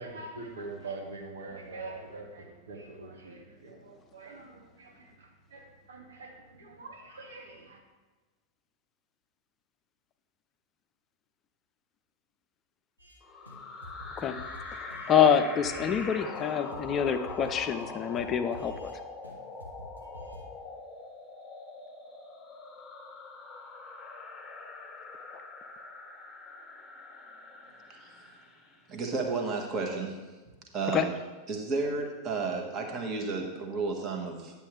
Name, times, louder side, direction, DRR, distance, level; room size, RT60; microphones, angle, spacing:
voice 1, 0.0-7.8, right 3 dB, 65° right, 1 dB, 1.5 m, -44 dB
sound 1, 13.0-13.2 13.5-13.6 13.8-16.1 16.3-19.0 19.2-19.3 19.6-20.4, left 1 dB, 80° right, 1.4 m, -48 dB
sound 2, 13.2-28.9, left 3 dB, ahead, 1.6 m, -44 dB
voice 2, 14.8-18.9 30.9-31.1, left 7 dB, 30° left, 8 dB, 0.4 m, -26 dB
voice 3, 28.9-30.2 30.7-31.1 31.5-34.6, right 4 dB, 30° right, 2 dB, 1.4 m, -32 dB
9.9 x 7.2 x 3.2 m, 1.3 s
figure-of-eight pair, 90°, 0 cm